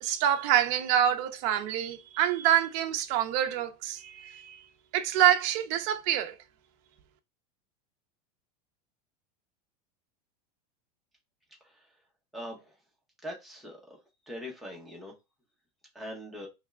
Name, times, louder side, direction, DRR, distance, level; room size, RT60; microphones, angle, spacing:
voice 1, 0.0-4.6 4.9-6.3, right 11 dB, 35° right, 0.6 m, -26 dB
voice 2, 12.3-12.7 13.2-13.8 14.3-15.1 15.9-16.5, equal, ahead, 0.8 m, -41 dB
3.4 x 3.2 x 3.5 m
supercardioid pair, 180°, 21 cm